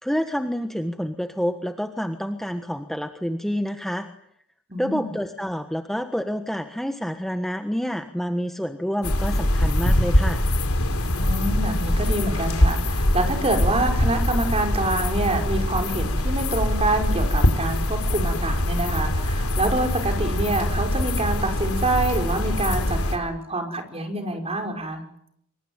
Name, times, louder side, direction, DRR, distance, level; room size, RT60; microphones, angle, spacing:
voice 1, 0.0-4.1 4.8-10.4, equal, ahead, 6 dB, 1.4 m, -28 dB
voice 2, 4.7-5.1 11.2-25.0, right 2 dB, 30° right, 4 dB, 5.6 m, -26 dB
sound 1, 9.0-23.2, left 1 dB, 85° left, 4.1 m, -23 dB
26.5 x 24.5 x 9.1 m, 0.70 s
head